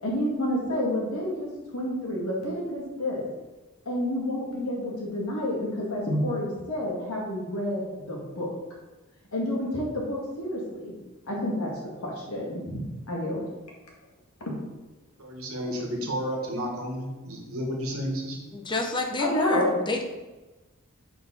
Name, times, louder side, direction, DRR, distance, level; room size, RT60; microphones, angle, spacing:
voice 1, 0.0-3.2 3.9-8.5 9.3-10.9 11.3-11.7 12.0-13.4 14.4-14.5 19.2-19.8, left 1 dB, 75° left, -3 dB, 2.0 m, -29 dB
voice 2, 15.2-18.3, equal, 70° right, 0 dB, 1.6 m, -32 dB
voice 3, 18.5-20.0, left 2 dB, 20° left, 3 dB, 0.7 m, -29 dB
5.4 x 4.7 x 5.5 m, 1.1 s
head